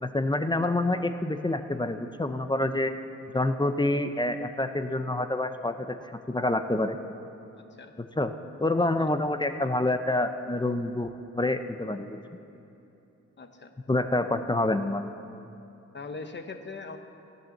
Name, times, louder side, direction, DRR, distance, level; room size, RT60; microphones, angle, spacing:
voice 1, 0.0-2.9 3.3-6.0 6.3-7.0 8.2-8.3 8.6-11.1 11.3-12.2 13.9-15.2, left 2 dB, 15° left, 8 dB, 0.6 m, -27 dB
voice 2, 7.6-7.9 9.0-9.1 13.4-13.7 15.9-17.0, left 4 dB, 40° left, 7 dB, 1.0 m, -41 dB
15.0 x 9.2 x 7.2 m, 2.9 s
wide cardioid pair, 125°, 30 cm